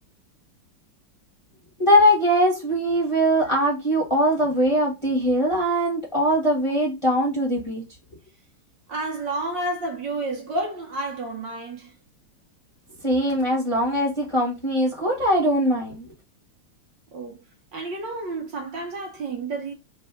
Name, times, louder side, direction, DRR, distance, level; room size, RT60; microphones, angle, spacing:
voice 1, 1.8-7.8 13.0-16.1, equal, 15° left, 1.2 m, -21 dB
voice 2, 8.9-11.9 17.1-17.4 17.7-19.7, right 2 dB, 65° right, 1.4 m, -30 dB
3.4 x 3.3 x 4.5 m
omnidirectional pair, 2.4 m